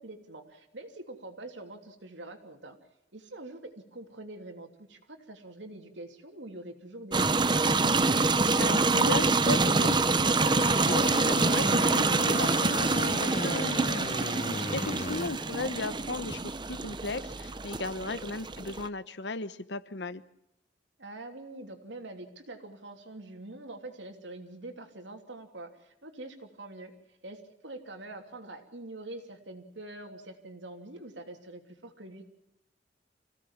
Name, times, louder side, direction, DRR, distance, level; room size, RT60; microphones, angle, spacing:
voice 1, 0.0-2.8 3.1-7.5 14.6-15.4 17.9-18.2 21.0-32.3, right 2 dB, 90° right, 5 dB, 3.0 m, -45 dB
sound 1, 7.1-18.9, right 3 dB, 25° right, 0.8 m, -26 dB
voice 2, 8.6-20.2, left 3 dB, 70° left, 14 dB, 1.0 m, -36 dB
sound 2, 10.5-15.3, left 3 dB, 45° left, 1.0 m, -36 dB
26.0 x 17.0 x 7.3 m, 0.81 s
head